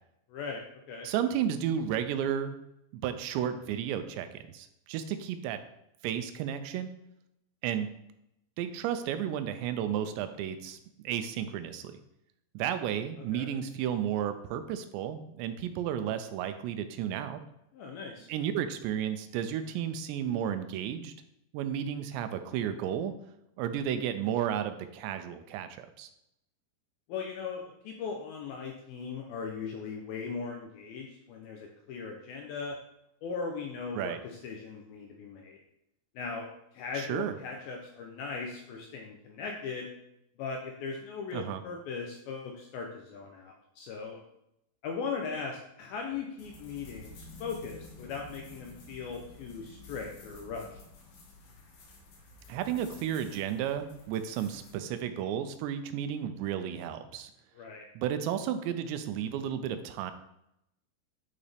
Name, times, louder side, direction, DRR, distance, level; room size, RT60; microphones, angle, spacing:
voice 1, 0.3-1.1 13.3-13.5 17.7-18.3 27.1-32.8 33.2-35.6 36.2-36.5 36.7-39.9 40.4-44.2 44.8-50.8 57.5-57.9, left 5 dB, 80° left, 1 dB, 2.2 m, -39 dB
voice 2, 1.0-2.5 2.9-5.6 6.0-6.9 7.6-7.9 8.6-10.8 11.0-11.9 12.5-17.4 18.3-21.1 21.5-23.1 23.6-26.1 33.9-34.2 37.0-37.3 41.3-41.6 52.5-57.3 58.0-60.1, right 9 dB, 85° right, 9 dB, 2.9 m, -33 dB
sound 1, 46.4-54.7, left 2 dB, 60° left, 2.6 m, -51 dB
11.0 x 4.2 x 3.4 m, 0.82 s
omnidirectional pair, 5.0 m